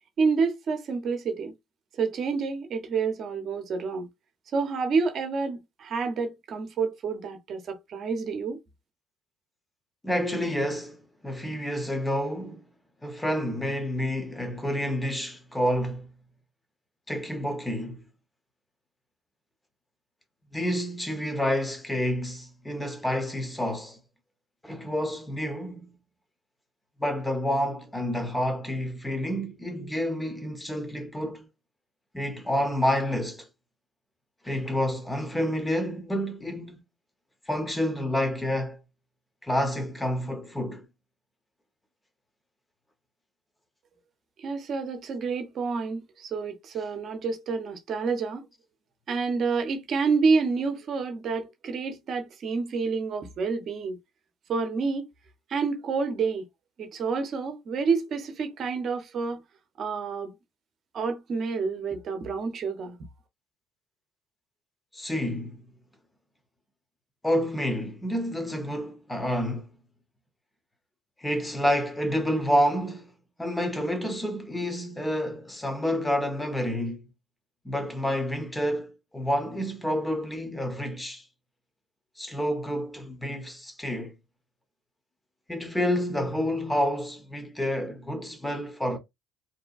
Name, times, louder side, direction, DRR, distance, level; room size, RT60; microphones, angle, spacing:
voice 1, 0.2-1.5 2.0-4.1 4.5-8.6 44.4-48.5 49.1-54.0 54.5-55.1 55.5-56.5 56.8-59.4 59.8-60.3 60.9-63.0, right 4 dB, 50° right, 0.8 m, -28 dB
voice 2, 10.0-12.7 13.0-16.1 17.1-18.0 20.5-24.0 24.6-26.0 27.0-31.5 32.1-33.5 34.4-36.8 37.5-38.8 39.4-40.9 64.9-65.6 67.2-69.7 71.2-73.1 73.4-77.1 77.6-81.2 82.2-84.1 85.5-89.0, equal, 10° left, 0.8 m, -29 dB
2.7 x 2.2 x 2.4 m
supercardioid pair, 85°, 0 cm